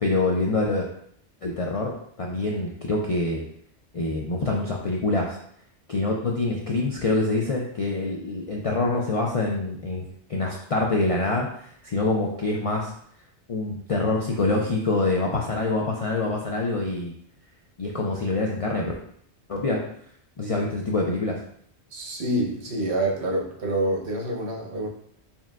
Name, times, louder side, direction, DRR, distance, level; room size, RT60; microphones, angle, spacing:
voice 1, 0.0-0.9 1.4-3.5 3.9-5.4 5.9-12.9 13.5-17.1 17.8-18.9 19.5-19.8 20.4-21.4, left 2 dB, 60° left, -1 dB, 0.3 m, -25 dB
voice 2, 21.9-24.9, right 1 dB, 70° right, -1 dB, 1.1 m, -27 dB
4.4 x 3.6 x 2.3 m, 0.66 s
omnidirectional pair, 1.1 m